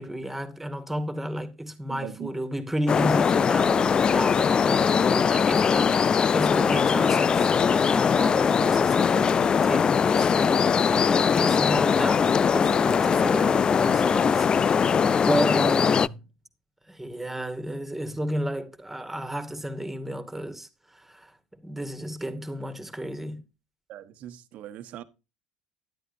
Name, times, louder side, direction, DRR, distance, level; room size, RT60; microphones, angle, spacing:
voice 1, 0.0-10.8 11.0-12.2 12.5-15.0 15.3-16.2 16.9-21.3 21.6-23.4, right 1 dB, 10° right, 2.3 m, -32 dB
voice 2, 1.9-2.3 23.9-25.0, right 12 dB, 60° right, 1.2 m, -40 dB
sound 1, 2.9-16.1, left 6 dB, 35° left, 0.5 m, -21 dB
12.5 x 10.5 x 2.7 m
hypercardioid pair, 65°, 3 cm